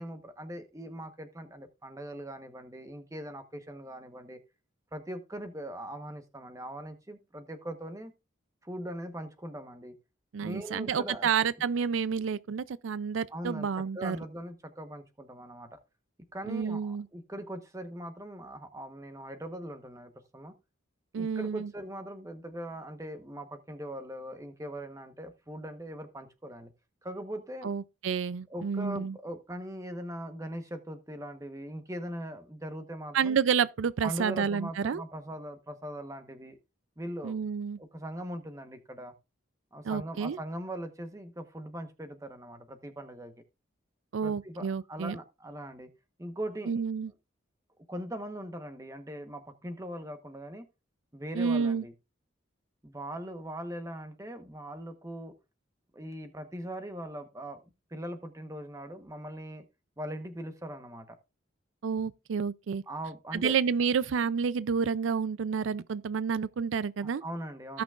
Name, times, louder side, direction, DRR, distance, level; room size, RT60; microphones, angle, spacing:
voice 1, 0.0-4.4 4.9-8.1 8.6-9.9 10.4-11.3 13.3-13.7 13.9-15.8 16.3-20.5 21.1-26.7 27.0-27.7 28.5-33.4 34.0-36.6 37.0-37.5 37.8-39.1 39.7-43.3 44.2-45.9 46.2-46.8 47.9-50.6 51.1-51.9 52.8-55.3 55.9-57.6 57.9-59.6 60.0-61.2 62.9-63.6 67.0-67.8, right 1 dB, 15° right, 1.0 m, -40 dB
voice 2, 10.3-14.2 16.5-17.1 21.1-21.7 27.6-29.2 33.1-35.0 37.2-37.8 39.8-40.4 44.1-45.2 46.7-47.1 51.4-51.8 61.8-62.8 63.3-67.2 67.7-67.8, right 6 dB, 80° right, 0.4 m, -29 dB
17.0 x 6.0 x 2.4 m
head